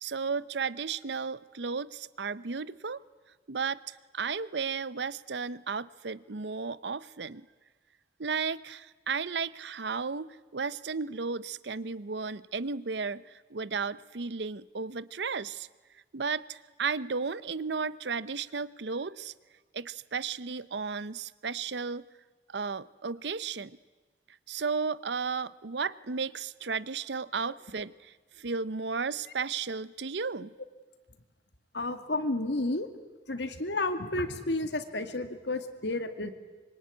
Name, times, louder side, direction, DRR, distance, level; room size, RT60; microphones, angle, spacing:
voice 1, 0.0-3.0 3.5-7.5 8.2-13.2 13.5-15.7 16.1-19.3 19.7-22.0 22.5-23.8 24.5-30.5, right 5 dB, 75° right, 18 dB, 0.7 m, -34 dB
voice 2, 31.7-32.9 33.3-36.3, left 2 dB, 80° left, 9 dB, 2.2 m, -31 dB
25.5 x 23.0 x 9.5 m, 1.3 s
head